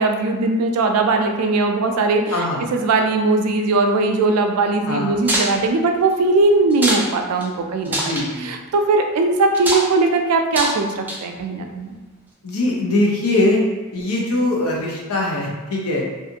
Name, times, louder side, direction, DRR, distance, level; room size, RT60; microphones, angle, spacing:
voice 1, 0.0-11.9, right 3 dB, 80° right, 4 dB, 0.4 m, -19 dB
sound 1, 5.2-5.5 6.7-7.1 7.4-7.5 7.9-8.3 9.5-9.9 10.5-10.8 11.1-11.4, right 1 dB, 10° right, 0.4 m, -22 dB
voice 2, 7.8-8.5 12.4-13.6 13.9-16.1, left 2 dB, 75° left, -3 dB, 0.7 m, -21 dB
2.5 x 2.5 x 2.7 m, 1.2 s
head